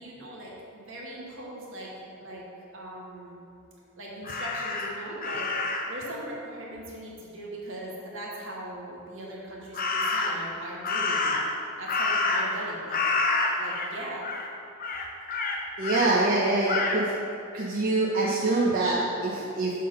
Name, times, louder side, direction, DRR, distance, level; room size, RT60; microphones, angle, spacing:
voice 1, 0.0-2.5 2.7-3.4 4.0-11.4 11.8-13.0 13.6-14.3, right 1 dB, 60° right, -4 dB, 1.4 m, -40 dB
Crow, 4.2-6.0 9.7-10.5 10.8-12.6 12.9-13.9 14.2-14.5 14.8-16.1 16.7-17.0, left 3 dB, 40° left, 0.6 m, -28 dB
voice 2, 15.8-17.1 17.5-19.7, right 2 dB, 40° right, -5 dB, 0.6 m, -25 dB
6.7 x 3.7 x 5.4 m, 2.6 s
head